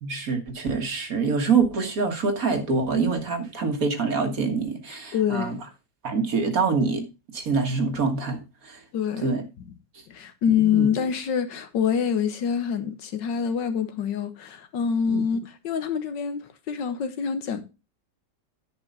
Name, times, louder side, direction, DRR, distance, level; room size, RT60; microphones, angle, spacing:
voice 1, 0.0-5.6 6.0-7.0 7.3-8.4 8.7-8.8 9.2-9.4 10.5-10.9 15.1-15.2, right 4 dB, 55° right, 1.9 m, -25 dB
voice 2, 4.9-5.6 8.9-9.3 10.1-17.6, left 7 dB, 85° left, 1.8 m, -26 dB
10.0 x 5.4 x 5.4 m
omnidirectional pair, 1.9 m